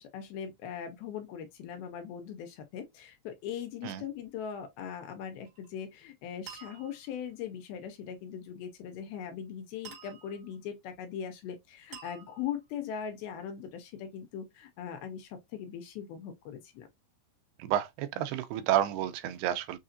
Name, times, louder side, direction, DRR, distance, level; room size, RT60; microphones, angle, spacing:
voice 1, 0.0-16.9, left 8 dB, 75° left, 2.8 m, -40 dB
sound 1, 5.4-5.8 6.5-7.2 9.8-10.6 11.9-12.8, right 8 dB, 55° right, 3.0 m, -49 dB
voice 2, 17.6-19.8, right 11 dB, 85° right, 2.6 m, -30 dB
6.5 x 2.7 x 2.6 m
omnidirectional pair, 4.6 m